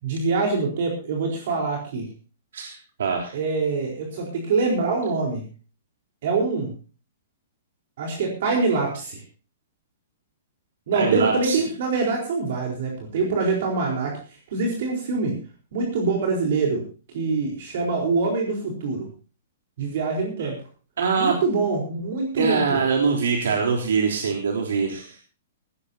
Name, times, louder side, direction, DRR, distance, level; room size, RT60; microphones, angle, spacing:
voice 1, 0.0-2.1 3.3-5.4 6.2-6.7 8.0-9.2 10.9-15.3 15.7-16.8 17.1-19.1 19.8-20.6 21.2-22.8, right 4 dB, 50° right, 0 dB, 4.3 m, -24 dB
voice 2, 2.5-3.3 10.9-11.6 20.4-20.5 21.0-21.4 22.4-25.2, right 5 dB, 80° right, 1 dB, 3.7 m, -23 dB
18.0 x 15.5 x 2.8 m, 0.36 s
hypercardioid pair, 175°, 0 cm